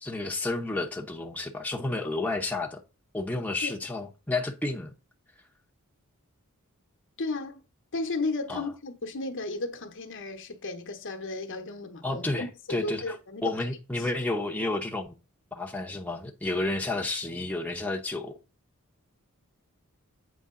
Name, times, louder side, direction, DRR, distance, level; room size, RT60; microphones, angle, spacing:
voice 1, 0.0-2.8 3.1-4.9 8.5-8.7 12.0-13.2 13.4-15.2 15.5-18.4, left 2 dB, 5° left, 0.9 m, -31 dB
voice 2, 7.2-7.6 7.9-13.5 14.0-14.1, left 3 dB, 60° left, 1.1 m, -34 dB
8.3 x 5.0 x 3.8 m
head